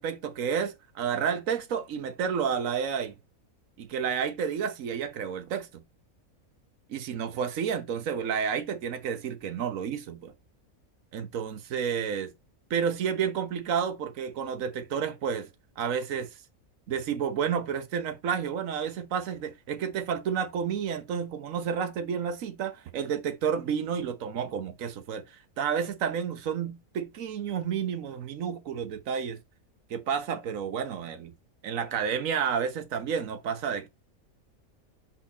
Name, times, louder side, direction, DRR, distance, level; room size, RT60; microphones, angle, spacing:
voice 1, 0.0-3.1 3.8-5.8 6.9-10.3 11.1-12.3 12.7-15.5 15.8-16.3 16.9-29.4 29.9-31.3 31.6-33.9, right 7 dB, 65° right, 1.3 m, -30 dB
5.9 x 4.1 x 4.0 m
omnidirectional pair, 1.5 m